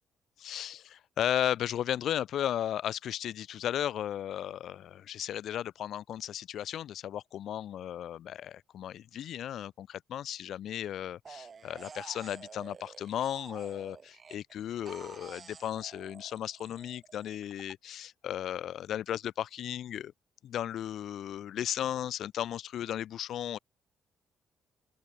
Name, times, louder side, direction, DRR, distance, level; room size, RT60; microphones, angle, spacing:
voice 1, 0.4-20.1 20.4-23.6, left 11 dB, 70° left, 0.7 m, -35 dB
sound 1, 11.2-14.5 14.9-17.7, right 5 dB, 40° right, 1.2 m, -50 dB
open air
cardioid pair, 90°, 0 cm